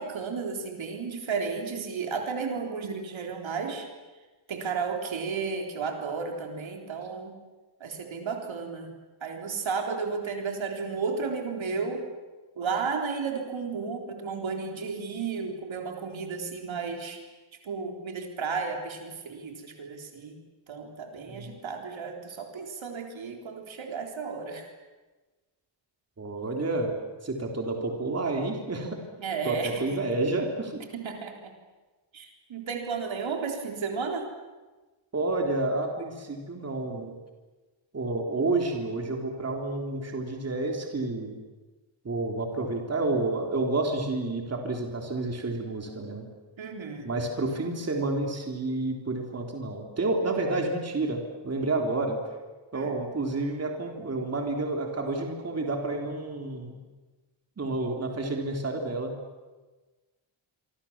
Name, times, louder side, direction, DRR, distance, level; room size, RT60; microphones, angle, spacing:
voice 1, 0.0-3.9 4.5-7.4 7.8-8.9 9.2-12.0 12.6-17.2 17.6-20.4 20.7-24.7 29.2-30.0 30.9-31.5 32.1-34.3 46.6-47.1 52.7-52.9, right 5 dB, 75° right, 3 dB, 3.9 m, -33 dB
voice 2, 26.2-27.0 27.2-29.0 29.4-30.8 35.1-37.1 37.9-41.4 42.0-46.3 47.0-52.2 52.7-56.8 57.6-59.2, right 2 dB, 30° right, 2 dB, 3.4 m, -30 dB
27.0 x 25.0 x 7.3 m, 1.2 s
wide cardioid pair, 180°, 47 cm